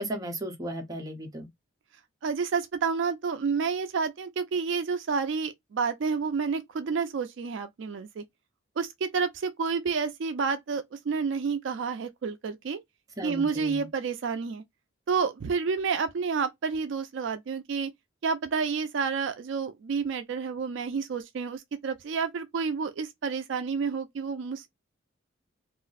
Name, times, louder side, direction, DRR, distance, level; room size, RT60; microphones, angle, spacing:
voice 1, 0.0-1.5 13.2-13.9, equal, 20° right, 0.7 m, -35 dB
voice 2, 2.2-8.2 8.8-12.8 13.2-14.6 15.1-17.9 18.2-24.7, right 5 dB, 70° right, 0.4 m, -29 dB
2.4 x 2.0 x 3.9 m
head